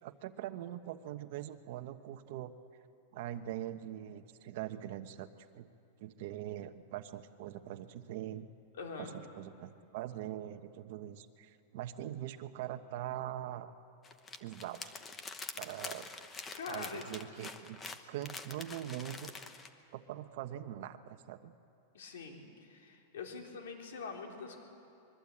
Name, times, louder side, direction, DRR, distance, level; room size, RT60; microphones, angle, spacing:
voice 1, 0.0-2.5 3.1-5.3 5.5-5.7 6.0-8.5 9.0-9.1 9.3-13.7 14.4-14.9 15.6-16.1 16.7-17.8 18.1-19.3 19.9-21.5, right 12 dB, 55° right, 8 dB, 1.1 m, -42 dB
voice 2, 8.7-9.2 16.5-17.1 21.9-24.6, left 5 dB, 90° left, 2 dB, 4.0 m, -44 dB
sound 1, 14.0-19.7, left 4 dB, 15° left, 1.0 m, -46 dB
24.5 x 22.5 x 8.6 m, 2.6 s
supercardioid pair, 165°, 0 cm